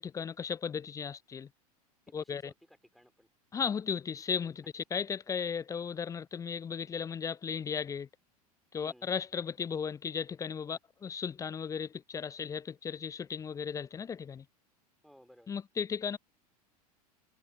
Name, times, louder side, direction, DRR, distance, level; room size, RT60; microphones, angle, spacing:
voice 1, 0.0-1.5 2.1-2.5 3.5-8.1 8.7-14.5 15.5-16.2, left 6 dB, 15° left, 0.5 m, -36 dB
voice 2, 2.1-3.3 8.8-9.1 15.0-15.5, equal, ahead, 3.7 m, -59 dB
figure-of-eight pair, 80°, 20 cm